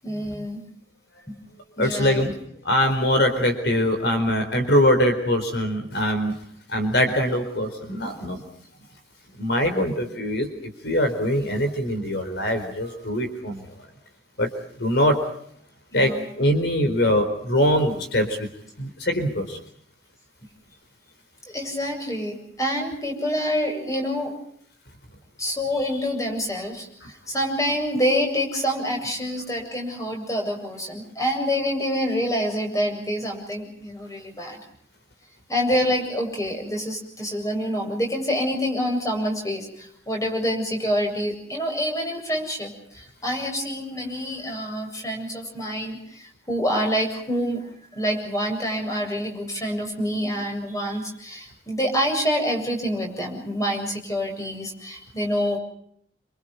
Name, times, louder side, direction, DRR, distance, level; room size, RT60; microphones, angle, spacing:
voice 1, 0.0-0.6 1.3-1.4 1.8-2.2 15.9-16.2 21.5-24.3 25.4-26.9 27.3-34.6 35.5-47.6 47.9-55.6, equal, 15° left, 2 dB, 7.9 m, -27 dB
voice 2, 1.8-2.4 2.6-6.4 6.7-8.4 9.4-13.6 14.4-14.5 14.8-15.2 15.9-18.5 18.8-19.6, equal, 70° left, 7 dB, 4.4 m, -23 dB
29.5 x 27.0 x 5.3 m, 0.66 s
head